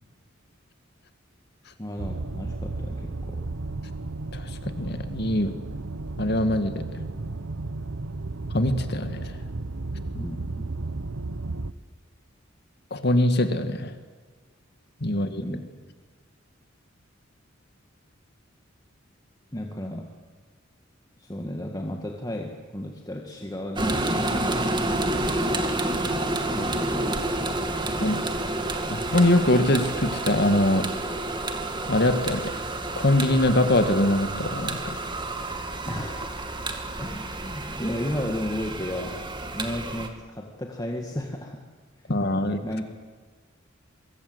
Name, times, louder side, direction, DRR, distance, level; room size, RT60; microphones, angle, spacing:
voice 1, 1.8-3.4 10.1-10.7 15.2-15.6 19.5-20.1 21.2-24.7 26.5-27.2 35.9-36.3 37.0-39.2 39.5-41.6 42.6-42.8, left 1 dB, 20° left, 2 dB, 1.9 m, -33 dB
sound 1, 2.0-11.7, right 2 dB, 85° right, 1.0 m, -34 dB
voice 2, 4.8-5.5 6.2-6.8 8.5-9.3 12.9-13.9 15.0-15.4 28.0-28.2 28.9-30.9 31.9-32.5 33.0-35.0 42.1-42.6, left 1 dB, 55° left, 8 dB, 2.0 m, -23 dB
sound 2, 23.8-40.1, right 2 dB, 25° right, 2.1 m, -29 dB
24.0 x 23.0 x 8.1 m, 1.5 s
head